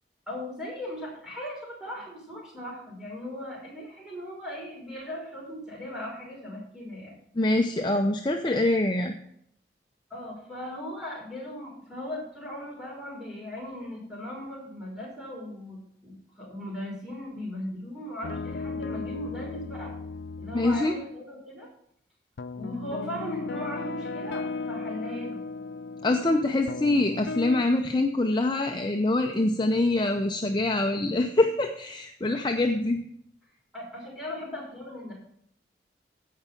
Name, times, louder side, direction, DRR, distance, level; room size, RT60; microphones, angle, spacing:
voice 1, 0.3-7.1 10.1-19.9 20.4-21.7 22.5-25.4 33.7-35.1, left 1 dB, 5° right, -4 dB, 5.4 m, -38 dB
voice 2, 7.4-9.1 20.5-20.9 26.0-33.0, left 2 dB, 25° left, 4 dB, 0.6 m, -25 dB
sound 1, 18.2-21.2 22.4-27.6, left 4 dB, 80° left, 0.5 m, -36 dB
16.0 x 5.7 x 5.8 m, 0.69 s
head